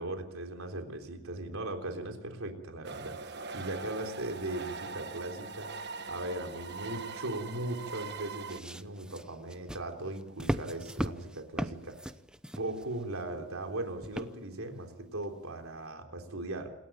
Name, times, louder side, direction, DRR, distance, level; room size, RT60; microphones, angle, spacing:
voice 1, 0.0-5.7 6.1-12.0 12.6-16.7, right 2 dB, 80° right, 4 dB, 3.7 m, -38 dB
sound 1, 2.8-8.6, right 4 dB, 55° right, 1.3 m, -42 dB
sound 2, 8.5-13.2 14.0-14.6 15.2-15.3, equal, 5° right, 0.8 m, -38 dB
28.0 x 12.5 x 9.1 m, 0.85 s
head